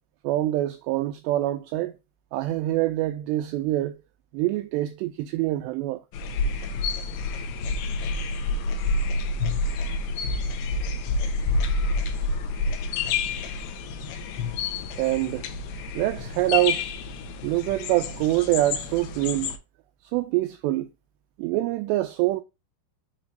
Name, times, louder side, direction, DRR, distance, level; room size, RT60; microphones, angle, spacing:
voice 1, 0.2-2.0 2.3-4.0 4.3-6.0 15.0-15.4 16.0-16.8 17.4-19.5 20.0-20.9 21.4-22.4, right 16 dB, 85° right, 2.4 m, -25 dB
sound 1, 6.1-19.6, left 3 dB, 75° left, 2.5 m, -28 dB
7.1 x 3.0 x 5.1 m
omnidirectional pair, 5.3 m